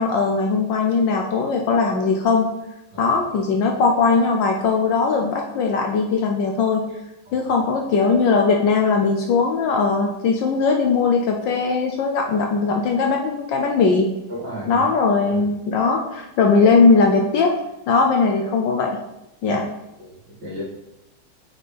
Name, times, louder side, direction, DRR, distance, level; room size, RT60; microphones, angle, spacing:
voice 1, 0.0-2.5 3.0-6.9 7.3-14.1 14.7-17.6 17.9-19.0 19.4-19.6, left 4 dB, 70° left, 2 dB, 1.2 m, -19 dB
voice 2, 14.3-14.9 15.3-15.4 19.5-19.6 20.0-20.6, right 1 dB, 55° right, -7 dB, 2.6 m, -34 dB
7.8 x 4.2 x 3.3 m, 0.92 s
omnidirectional pair, 2.3 m